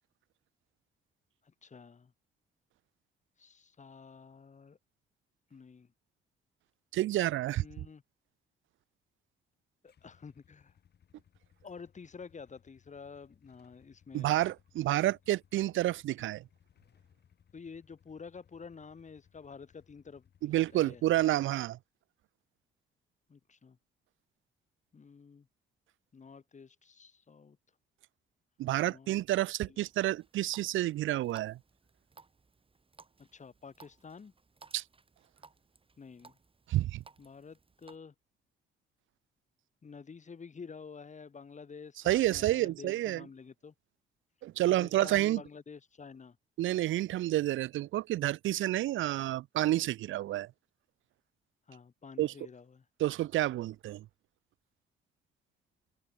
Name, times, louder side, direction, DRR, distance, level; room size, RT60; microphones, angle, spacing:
voice 1, 1.4-2.1 3.4-4.8 5.5-5.9 7.6-8.0 9.8-10.7 11.6-14.3 17.5-21.0 23.3-23.8 24.9-25.5 26.1-27.6 28.8-29.2 29.7-29.8 33.2-34.3 36.0-36.4 37.2-38.1 39.8-43.7 44.7-46.4 51.7-52.9, left 5 dB, 35° left, 6.3 m, -50 dB
voice 2, 6.9-7.6 14.1-16.4 20.4-21.8 28.6-31.6 34.7-34.8 36.7-37.0 42.1-43.2 44.4-45.4 46.6-50.5 52.2-52.3 53.0-54.0, right 15 dB, 80° right, 0.8 m, -29 dB
Motorcycle / Engine starting / Idling, 9.9-21.3, left 8 dB, 55° left, 6.1 m, -66 dB
Water tap faucet, 29.8-38.0, right 4 dB, 25° right, 5.1 m, -60 dB
cardioid pair, 90°, 20 cm